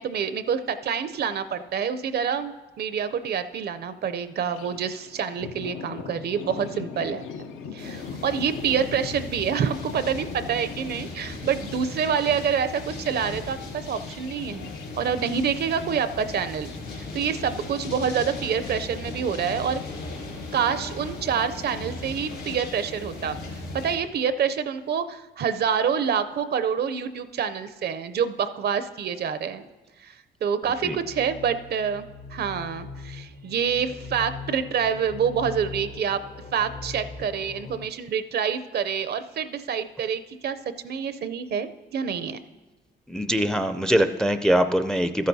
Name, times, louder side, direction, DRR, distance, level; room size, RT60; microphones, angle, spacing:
voice 1, 0.0-7.3 7.7-19.8 20.5-23.4 23.8-29.6 30.0-30.1 30.4-36.2 36.5-40.6 40.8-42.4, right 7 dB, 55° right, 11 dB, 0.5 m, -27 dB
Thunder, 4.5-24.1, left 6 dB, 80° left, 0.6 m, -43 dB
sound 1, 7.8-24.0, left 2 dB, 65° left, 3.6 m, -37 dB
sound 2, 30.6-37.9, left 4 dB, 50° left, 0.7 m, -40 dB
voice 2, 43.1-45.3, equal, 5° left, 10 dB, 0.4 m, -22 dB
13.0 x 10.0 x 2.7 m, 1.2 s
cardioid pair, 90°, 20 cm